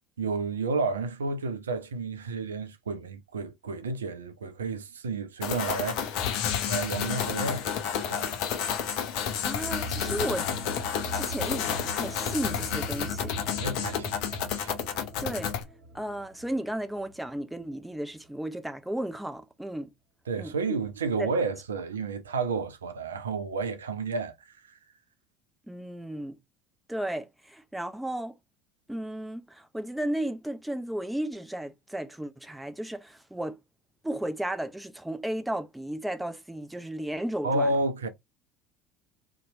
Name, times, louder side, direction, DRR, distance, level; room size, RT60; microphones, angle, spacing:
voice 1, 0.2-6.0 6.7-7.7 8.1-8.3 13.6-14.7 20.3-24.8 37.4-38.1, right 3 dB, 75° right, 0.4 m, -31 dB
sound 1, 5.4-15.6, left 8 dB, 55° left, 0.5 m, -30 dB
voice 2, 9.4-10.5 11.1-13.4 15.2-15.5 15.9-19.9 20.4-20.8 21.2-21.3 25.7-26.4 26.9-28.3 28.9-33.6 34.0-37.7, right 1 dB, 5° right, 0.5 m, -34 dB
sound 2, 9.6-17.8, equal, 40° right, 1.3 m, -41 dB
2.7 x 2.2 x 2.7 m
figure-of-eight pair, 65°, 0 cm